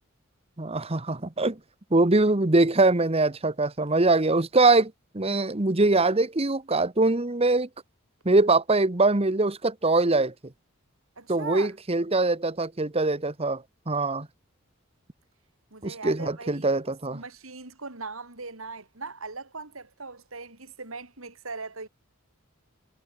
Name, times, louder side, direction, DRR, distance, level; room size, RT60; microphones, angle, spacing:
voice 1, 0.6-1.6 1.9-7.7 8.2-10.3 11.3-14.3 15.8-17.2, right 2 dB, 30° right, 1.2 m, -23 dB
voice 2, 11.2-11.7 15.7-16.7 17.1-21.9, right 3 dB, 80° right, 3.7 m, -39 dB
head